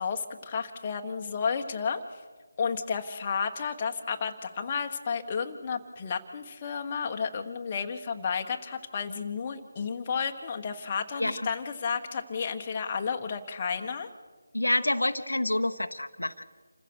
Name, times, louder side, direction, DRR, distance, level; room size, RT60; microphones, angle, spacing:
voice 1, 0.0-2.0 2.6-14.1, left 6 dB, 30° left, 4 dB, 1.4 m, -32 dB
voice 2, 11.2-11.5 14.5-16.4, left 1 dB, 85° left, 8 dB, 1.0 m, -28 dB
27.5 x 15.5 x 6.3 m, 1.4 s
figure-of-eight pair, 160°, 0 cm